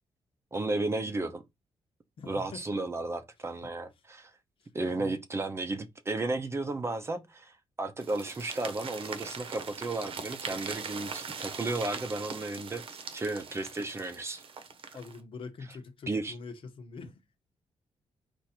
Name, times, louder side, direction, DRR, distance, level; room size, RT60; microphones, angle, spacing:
voice 1, 0.5-1.4 2.3-4.3 4.7-12.8 13.1-14.4 16.1-16.4, right 2 dB, 25° right, 0.6 m, -33 dB
voice 2, 2.2-2.6 5.0-5.1 14.9-17.1, left 4 dB, 55° left, 1.0 m, -44 dB
sound 1, 8.0-15.2, right 5 dB, 60° right, 0.9 m, -41 dB
4.6 x 2.6 x 4.3 m
cardioid pair, 125°, 11 cm